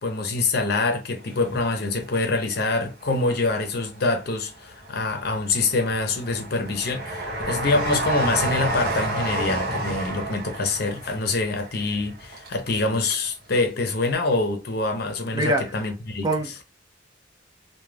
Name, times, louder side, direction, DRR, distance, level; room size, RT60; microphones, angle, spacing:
voice 1, 0.0-16.3, left 3 dB, 55° left, 0.6 m, -25 dB
Train, 1.3-2.6 3.0-4.0 4.5-13.3 13.5-13.6, right 1 dB, 55° right, 0.8 m, -30 dB
voice 2, 15.3-15.8 16.2-16.6, right 1 dB, 20° right, 0.4 m, -25 dB
2.3 x 2.2 x 3.2 m
head